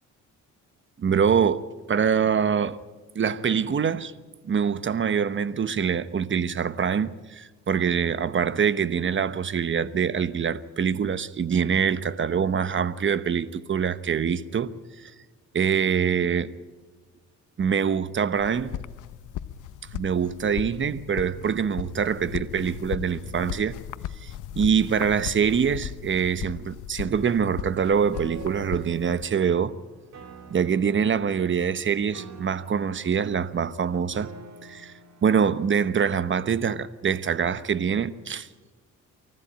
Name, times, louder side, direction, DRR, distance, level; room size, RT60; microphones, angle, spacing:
voice 1, 1.0-1.6 1.9-2.8 3.1-4.1 4.4-14.7 15.0-15.1 15.5-16.5 17.6-18.7 19.9-23.7 24.2-29.7 30.5-34.3 34.6-34.9 35.2-38.5, right 7 dB, 40° right, 1.1 m, -24 dB
sound 1, 18.3-29.2, left 11 dB, 80° left, 0.9 m, -37 dB
Piano, 28.1-36.1, right 5 dB, 60° right, 2.9 m, -47 dB
24.5 x 15.0 x 9.0 m
cardioid pair, 90°, 30 cm